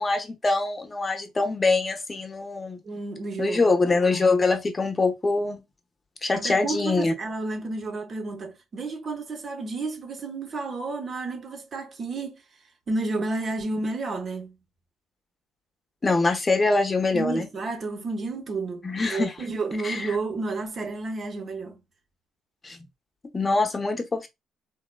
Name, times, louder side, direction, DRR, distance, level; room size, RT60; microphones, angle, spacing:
voice 1, 0.0-2.8 3.4-5.6 6.2-7.1 16.0-17.5 18.8-19.3 19.8-20.2 22.6-22.8 23.3-24.3, left 3 dB, 30° left, 0.7 m, -24 dB
voice 2, 2.8-3.7 6.3-12.4 12.9-14.6 17.1-21.8, right 3 dB, 50° right, 0.8 m, -31 dB
3.2 x 2.2 x 2.2 m
hypercardioid pair, 55°, 0 cm